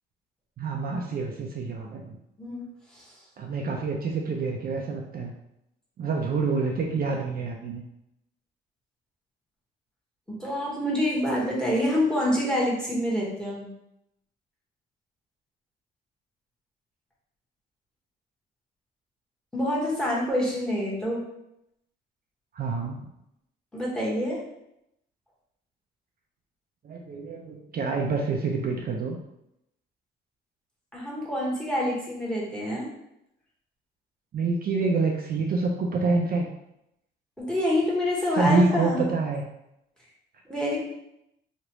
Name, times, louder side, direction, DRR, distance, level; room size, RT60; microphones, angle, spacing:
voice 1, 0.6-2.2 3.4-5.3 6.0-7.8 22.5-23.1 26.8-29.2 34.3-36.5 38.3-39.4, right 3 dB, 50° right, 0 dB, 0.4 m, -27 dB
voice 2, 10.3-13.7 19.5-21.2 23.7-24.4 30.9-32.9 37.4-39.0 40.4-40.8, left 1 dB, 5° left, -5 dB, 1.2 m, -26 dB
3.1 x 2.4 x 3.0 m, 0.82 s
cardioid pair, 90°, 20 cm